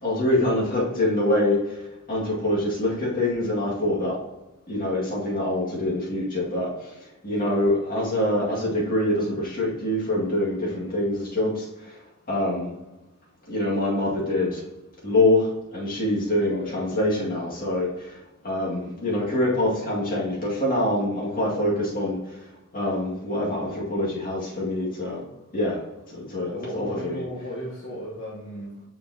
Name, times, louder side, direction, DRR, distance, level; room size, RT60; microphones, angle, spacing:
voice 1, 0.0-1.8 2.1-4.2 4.7-6.9 7.2-11.9 12.3-12.7 13.5-14.6 15.0-18.2 18.4-22.4 22.7-25.2 25.5-25.7 26.1-27.2, left 1 dB, 40° left, -5 dB, 2.0 m, -25 dB
voice 2, 10.6-10.9 12.3-12.7 16.5-16.8 18.7-19.0 25.5-25.8 26.5-28.8, equal, 60° left, -7 dB, 1.2 m, -36 dB
6.9 x 5.3 x 2.8 m, 0.99 s
head